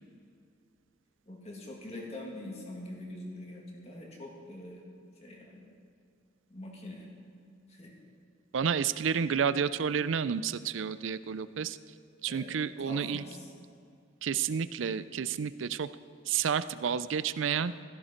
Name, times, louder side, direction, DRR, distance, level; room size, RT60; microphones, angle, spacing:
voice 1, 1.3-4.8 5.2-5.7 6.5-7.1 7.7-7.9 12.3-13.5, left 1 dB, 35° left, -1 dB, 2.3 m, -44 dB
voice 2, 8.5-11.8 12.2-13.2 14.2-15.9 16.3-17.7, right 7 dB, 80° right, 15 dB, 0.5 m, -30 dB
16.0 x 14.0 x 4.5 m, 2.4 s
head